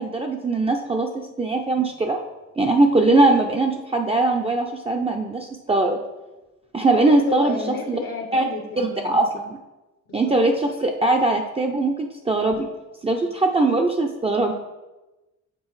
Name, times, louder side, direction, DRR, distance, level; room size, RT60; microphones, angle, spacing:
voice 1, 0.0-2.2 2.6-6.0 6.7-7.6 7.9-8.0 8.3-8.4 8.8-9.6 10.1-12.7 13.0-14.5, right 2 dB, 20° right, 2 dB, 0.5 m, -21 dB
voice 2, 7.0-9.3 10.1-10.3 13.2-13.3, left 4 dB, 65° left, 2 dB, 0.8 m, -32 dB
7.4 x 4.0 x 3.2 m, 1.1 s
cardioid pair, 90°, 30 cm